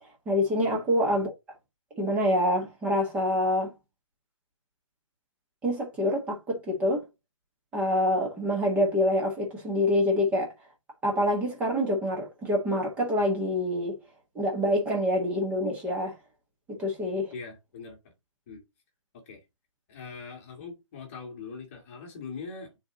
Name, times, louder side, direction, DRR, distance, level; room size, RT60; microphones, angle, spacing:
voice 1, 0.2-1.3 2.0-3.7 5.6-7.0 7.7-10.5 11.0-14.0 14.3-16.1 16.7-17.3, left 1 dB, 10° right, 1.4 m, -26 dB
voice 2, 17.3-18.0 18.5-18.6 19.3-19.4 19.9-22.8, left 5 dB, 25° left, 1.9 m, -41 dB
7.1 x 3.9 x 3.8 m
hypercardioid pair, 175°, 17 cm